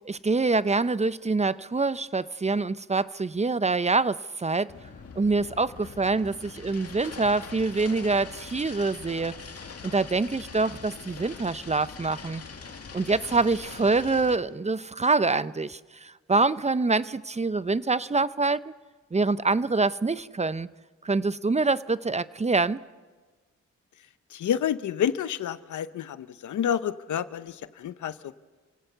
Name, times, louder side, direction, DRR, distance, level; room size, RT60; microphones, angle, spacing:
voice 1, 0.0-4.7 5.2-9.4 9.8-12.4 12.9-18.6 19.1-20.7 21.0-22.8, right 3 dB, 25° right, 0.6 m, -25 dB
sound 1, 4.7-14.4, left 5 dB, 55° left, 2.2 m, -43 dB
voice 2, 24.3-28.3, left 9 dB, 80° left, 0.8 m, -29 dB
28.5 x 17.0 x 6.8 m
cardioid pair, 70°, 29 cm